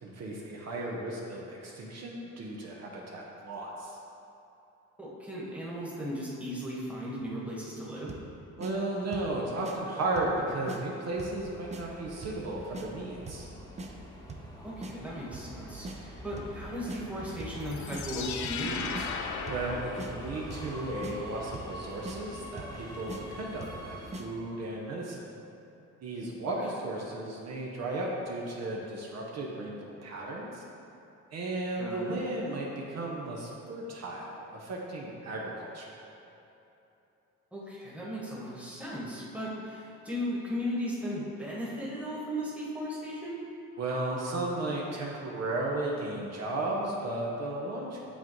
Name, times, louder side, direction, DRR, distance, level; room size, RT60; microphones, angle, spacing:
voice 1, 0.0-4.0 8.6-13.5 19.5-25.2 26.0-30.6 31.3-35.9 43.8-48.0, right 2 dB, 60° right, -2 dB, 0.9 m, -35 dB
voice 2, 5.0-8.1 14.6-19.1 26.4-26.5 31.8-32.2 37.5-43.4, equal, 5° right, -5 dB, 1.4 m, -36 dB
sound 1, 8.1-8.3 8.6-8.7 9.1-9.3 9.6-9.8 10.2-10.4 10.7-10.8 11.2-11.4 11.7-11.8 12.2-12.4 12.7-12.9 13.3-13.5 13.8-13.9 14.3-14.5 14.8-14.9 15.3-15.6 15.8-16.0 16.4-16.6 16.9-17.0 17.4-17.6 17.9-18.0 18.4-18.7 19.0-19.1 19.5-19.7 20.0-20.1 20.5-20.7 21.0-21.1 21.5-21.8 22.1-22.2 22.6-22.8 23.1-23.2 23.6-23.8 24.1-24.3, right 2 dB, 25° right, 0.6 m, -41 dB
Subway metro underground, 11.1-24.2, equal, 10° left, 1.0 m, -45 dB
sound 2, 17.6-20.7, left 6 dB, 70° left, 0.5 m, -37 dB
8.2 x 3.8 x 3.1 m, 2.9 s
cardioid pair, 90°, 30 cm